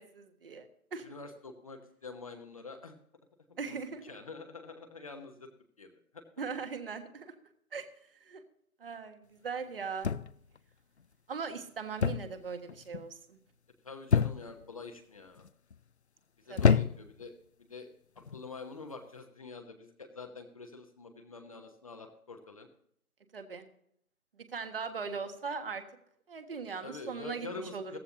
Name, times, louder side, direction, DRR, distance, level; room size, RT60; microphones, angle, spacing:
voice 1, 0.0-1.0 3.6-4.0 6.4-7.3 7.7-7.8 8.2-8.4 8.8-10.1 11.3-13.4 16.5-16.8 23.3-23.7 24.5-25.8 26.3-27.5 27.7-27.9, right 5 dB, 40° right, 7 dB, 1.6 m, -39 dB
voice 2, 1.0-2.9 3.5-5.5 5.8-6.2 13.8-15.5 16.4-17.3 17.7-17.9 18.2-22.7 26.8-28.0, left 4 dB, 25° left, 5 dB, 0.9 m, -46 dB
sound 1, 10.0-10.6 12.0-12.4 12.7-13.1 14.1-14.7 15.4-15.8 16.6-17.2 18.2-18.4, left 6 dB, 50° left, 0.5 m, -27 dB
17.0 x 14.5 x 2.8 m, 0.70 s
figure-of-eight pair, 145°, 45 cm